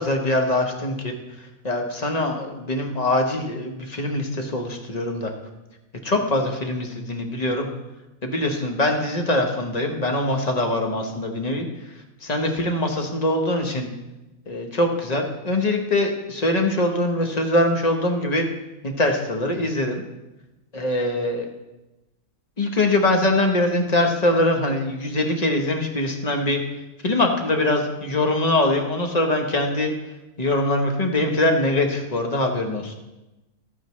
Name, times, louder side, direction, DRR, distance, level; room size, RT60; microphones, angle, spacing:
voice 1, 0.0-5.3 6.0-7.7 8.2-13.9 14.5-18.5 18.8-20.0 20.7-21.5 22.6-32.9, left 1 dB, 30° left, 3 dB, 1.0 m, -23 dB
12.5 x 8.8 x 3.1 m, 1.0 s
omnidirectional pair, 1.6 m